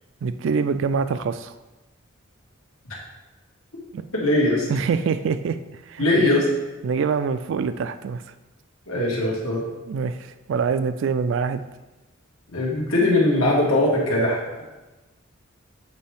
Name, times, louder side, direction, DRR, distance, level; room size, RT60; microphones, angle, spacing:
voice 1, 0.2-1.5 3.9-4.0 4.7-6.3 6.8-8.2 9.9-11.6, right 5 dB, 60° right, 12 dB, 0.3 m, -25 dB
voice 2, 4.1-4.7 6.0-6.5 8.9-9.7 12.5-14.6, left 1 dB, 90° left, -3 dB, 1.8 m, -21 dB
8.0 x 4.5 x 3.4 m, 1.1 s
head